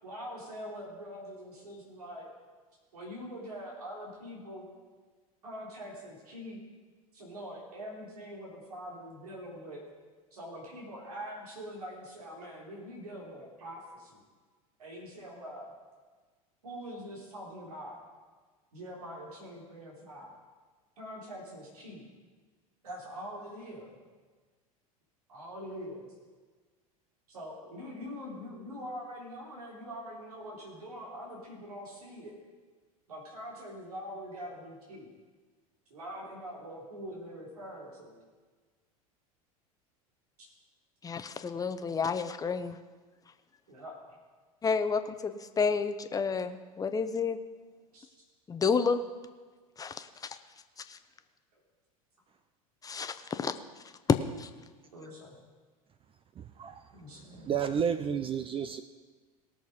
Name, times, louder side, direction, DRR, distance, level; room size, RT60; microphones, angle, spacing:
voice 1, 0.0-2.3 2.9-4.7 5.4-6.6 7.1-9.8 10.3-14.2 14.8-15.7 16.6-18.0 18.7-20.3 21.0-22.1 22.8-24.0 25.3-26.1 27.3-32.4 33.1-35.1 35.9-38.1 40.4-40.5 43.7-44.2 47.9-48.1 51.5-51.6 54.9-55.4 56.9-57.6, equal, 80° right, -4 dB, 3.9 m, -44 dB
voice 2, 41.0-42.8 44.6-47.4 48.5-49.0 49.8-50.4 50.9-51.0 52.8-53.5 54.1-54.5, left 5 dB, 20° left, 10 dB, 0.9 m, -30 dB
voice 3, 56.4-56.8 57.5-58.8, right 7 dB, 30° right, 10 dB, 0.6 m, -31 dB
18.5 x 6.5 x 5.2 m, 1.4 s
hypercardioid pair, 85°, 19 cm